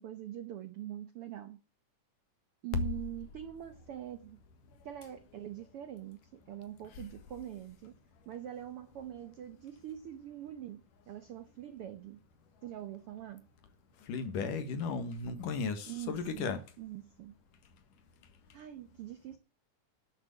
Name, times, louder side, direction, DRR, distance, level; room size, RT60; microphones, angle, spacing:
voice 1, 0.0-1.6 2.6-4.4 4.8-8.0 8.3-12.2 12.6-13.5 15.9-16.5 16.8-17.3 18.5-19.4, right 12 dB, 75° right, 1.3 m, -44 dB
voice 2, 14.1-16.6, left 5 dB, 75° left, 3.1 m, -35 dB
11.5 x 6.9 x 8.2 m
omnidirectional pair, 3.9 m